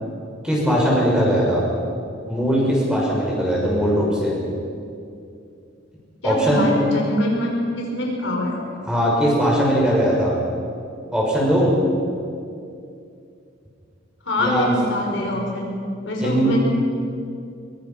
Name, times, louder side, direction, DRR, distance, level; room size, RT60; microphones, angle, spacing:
voice 1, 0.4-1.6 2.3-4.3 6.2-6.7 8.8-10.3 11.1-11.7 14.4-14.7 16.2-16.5, equal, 5° right, -4 dB, 6.1 m, -19 dB
voice 2, 6.2-8.6 14.2-16.6, left 1 dB, 70° left, 0 dB, 4.8 m, -24 dB
23.5 x 22.5 x 6.0 m, 2.5 s
head